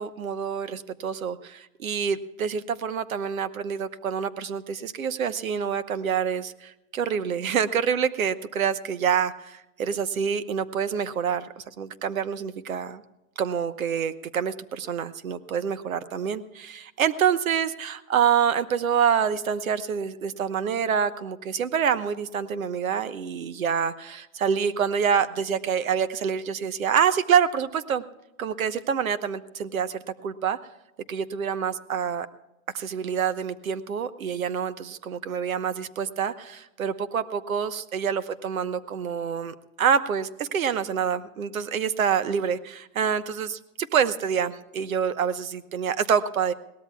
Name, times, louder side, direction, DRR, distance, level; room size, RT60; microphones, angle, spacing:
voice 1, 0.0-13.0 13.4-28.0 28.4-30.6 31.1-32.3 32.7-46.5, right 7 dB, 70° right, 13 dB, 1.1 m, -27 dB
22.0 x 18.0 x 2.3 m, 0.94 s
hypercardioid pair, 170°, 42 cm